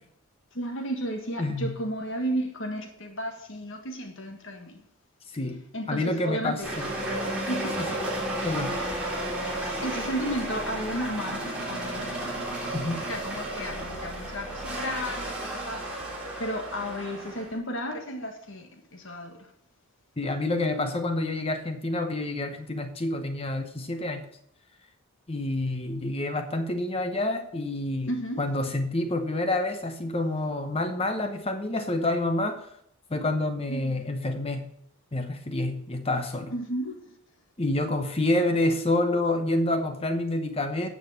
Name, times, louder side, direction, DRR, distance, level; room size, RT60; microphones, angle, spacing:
voice 1, 0.5-4.8 5.7-6.7 7.5-7.9 9.8-12.8 13.1-19.5 28.1-28.4 33.7-34.0 36.5-37.1, equal, 55° left, 1.7 m, -34 dB
voice 2, 1.4-1.8 5.3-5.6 5.9-6.9 7.8-8.1 8.4-8.8 12.7-13.1 20.2-24.3 25.3-28.1 28.4-32.7 33.1-34.7 35.1-36.5 37.6-40.9, left 2 dB, 25° left, 0.8 m, -28 dB
sound 1, 6.6-17.5, right 1 dB, 5° right, 3.3 m, -33 dB
9.7 x 6.7 x 6.3 m
head